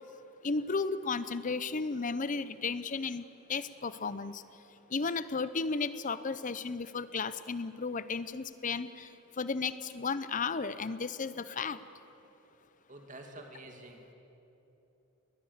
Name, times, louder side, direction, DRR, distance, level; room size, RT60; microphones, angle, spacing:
voice 1, 0.4-4.4 4.9-9.1 9.4-11.8, left 4 dB, 40° left, 14 dB, 0.7 m, -34 dB
voice 2, 12.9-14.1, right 1 dB, 40° right, 3 dB, 2.4 m, -48 dB
20.5 x 20.5 x 7.3 m, 3.0 s
head